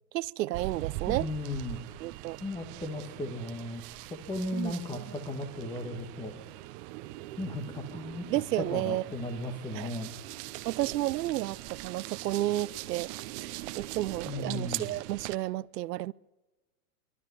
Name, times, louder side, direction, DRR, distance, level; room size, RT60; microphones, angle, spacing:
voice 1, 0.1-1.3 2.0-2.4 4.5-5.0 8.3-9.0 9.7-9.9 10.6-13.1 13.4-13.5 13.8-16.1, right 15 dB, 80° right, 0.7 m, -32 dB
sound 1, 0.5-15.4, right 16 dB, 35° right, 0.8 m, -42 dB
voice 2, 1.1-1.8 2.4-3.8 4.1-6.4 7.4-8.2 8.6-10.1 14.2-14.9, left 2 dB, 10° left, 1.5 m, -36 dB
26.5 x 13.0 x 9.5 m
supercardioid pair, 150°, 48 cm